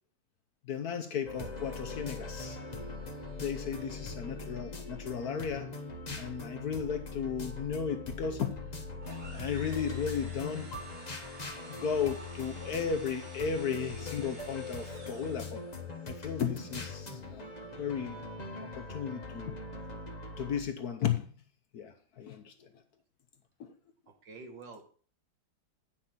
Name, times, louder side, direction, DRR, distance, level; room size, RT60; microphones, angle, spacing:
voice 1, 0.6-2.6 3.4-5.7 6.1-8.8 9.3-10.7 11.7-15.6 16.1-17.4 17.8-18.2 18.6-19.6 20.4-21.4 21.7-22.7 23.6-23.7, left 7 dB, 60° left, 1.1 m, -35 dB
sound 1, 1.3-20.6, left 3 dB, 25° left, 1.0 m, -41 dB
voice 2, 3.6-4.2 11.4-11.5 24.1-24.8, right 3 dB, 70° right, 2.0 m, -50 dB
sound 2, 9.0-15.7, right 1 dB, 35° right, 2.2 m, -51 dB
9.0 x 5.9 x 5.8 m
omnidirectional pair, 2.1 m